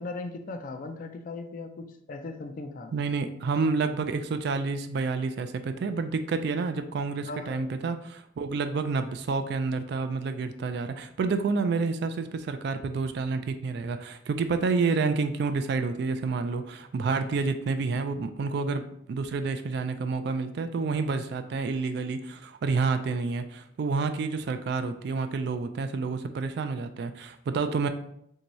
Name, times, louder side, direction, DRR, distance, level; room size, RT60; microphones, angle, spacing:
voice 1, 0.0-2.9 7.2-7.7, left 3 dB, 45° left, 7 dB, 0.3 m, -38 dB
voice 2, 2.9-27.9, right 4 dB, 60° right, 9 dB, 0.3 m, -29 dB
3.4 x 2.7 x 3.0 m, 0.73 s
head